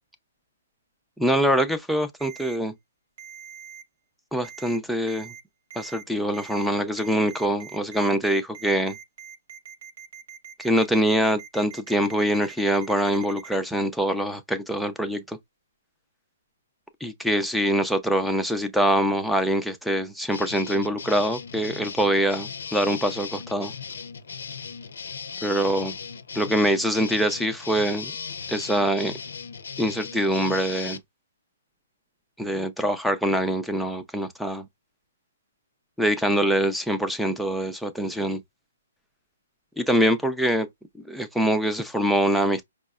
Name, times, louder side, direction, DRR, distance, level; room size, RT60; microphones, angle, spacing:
voice 1, 1.2-2.7 4.3-5.3 5.8-9.0 10.6-15.4 17.0-23.7 25.4-26.0 26.3-28.1 28.5-29.1 29.8-31.0 32.4-34.7 36.0-38.4 39.8-40.7 41.0-42.6, right 1 dB, ahead, 0.5 m, -24 dB
Ringtone, 2.2-2.6 3.2-3.8 4.4-4.8 5.1-5.4 5.7-6.0 6.3-6.7 7.0-13.6, right 8 dB, 60° right, 1.2 m, -43 dB
sound 1, 20.3-31.0, left 6 dB, 75° left, 0.5 m, -37 dB
5.2 x 2.0 x 2.3 m
hypercardioid pair, 155°, 0 cm